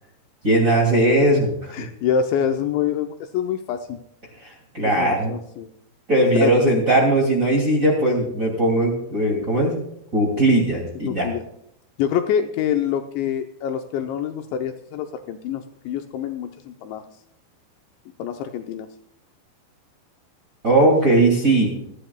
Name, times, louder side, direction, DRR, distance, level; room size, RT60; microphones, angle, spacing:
voice 1, 0.4-1.9 4.4-5.3 6.1-9.7 10.1-11.3 20.6-21.8, right 1 dB, 25° right, 0 dB, 1.9 m, -19 dB
voice 2, 1.7-4.0 4.8-5.7 6.3-6.7 11.0-11.4 12.0-17.0 18.2-18.9, left 8 dB, 80° left, 5 dB, 2.8 m, -26 dB
26.5 x 10.0 x 2.3 m, 0.74 s
omnidirectional pair, 5.7 m